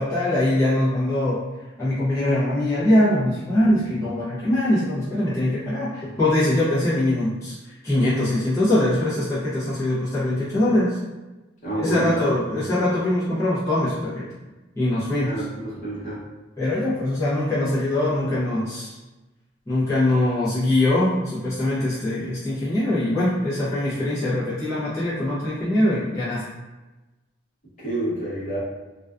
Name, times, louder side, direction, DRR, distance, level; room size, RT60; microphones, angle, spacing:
voice 1, 0.0-1.4 1.8-11.0 11.7-14.3 14.8-15.5 16.6-19.0 19.7-26.5, left 1 dB, 15° left, -12 dB, 0.6 m, -22 dB
voice 2, 11.6-12.1 12.5-12.6 15.3-16.2 27.8-28.6, right 1 dB, 40° left, -8 dB, 0.9 m, -28 dB
2.4 x 2.2 x 2.3 m, 1.1 s
head